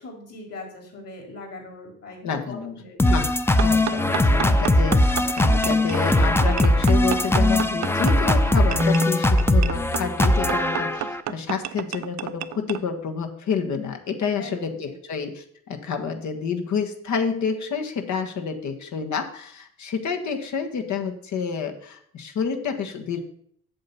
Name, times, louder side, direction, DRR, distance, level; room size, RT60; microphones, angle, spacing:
voice 1, 0.0-3.1 14.4-14.9, left 2 dB, 55° left, 2 dB, 3.8 m, -41 dB
voice 2, 2.2-23.2, left 6 dB, 70° left, 5 dB, 1.4 m, -29 dB
sound 1, 3.0-11.2, left 1 dB, 10° left, 0.6 m, -20 dB
sound 2, 3.6-12.8, right 12 dB, 65° right, 0.6 m, -32 dB
7.8 x 7.0 x 5.5 m, 0.64 s
cardioid pair, 90°, 30 cm